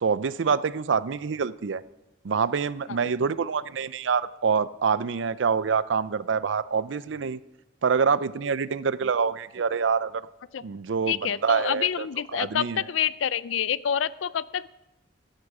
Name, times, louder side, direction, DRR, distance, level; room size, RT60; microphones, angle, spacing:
voice 1, 0.0-1.8 2.2-7.4 7.8-10.2 10.6-12.1 12.3-12.8, right 6 dB, 70° right, 17 dB, 0.5 m, -26 dB
voice 2, 11.1-14.7, left 8 dB, 90° left, 19 dB, 0.4 m, -27 dB
14.0 x 11.0 x 4.8 m, 0.95 s
head